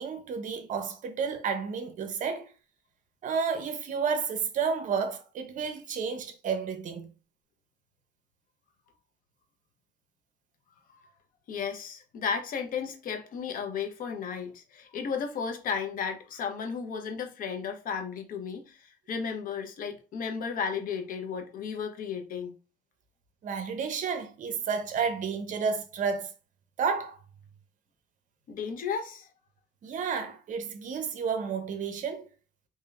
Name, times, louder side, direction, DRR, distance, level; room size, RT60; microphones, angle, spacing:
voice 1, 0.0-2.5 3.2-7.1 23.4-26.3 26.8-27.2 29.8-32.3, right 6 dB, 50° right, 0.7 m, -31 dB
voice 2, 11.5-22.5 28.5-29.3, left 6 dB, 55° left, 0.8 m, -34 dB
3.3 x 2.8 x 2.3 m
cardioid pair, 110°, 17 cm